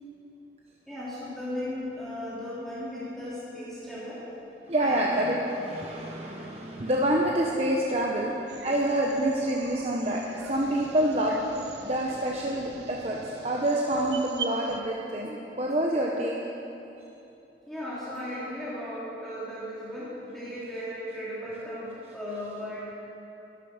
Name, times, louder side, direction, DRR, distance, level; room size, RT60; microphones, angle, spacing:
voice 1, 0.9-4.2 4.8-5.2 17.6-22.8, left 1 dB, ahead, -10 dB, 3.0 m, -36 dB
voice 2, 4.6-11.4 11.8-16.3, right 1 dB, 35° right, -2 dB, 1.0 m, -27 dB
sound 1, 8.5-14.8, right 5 dB, 75° right, 0.8 m, -42 dB
13.5 x 11.5 x 6.5 m, 2.9 s
head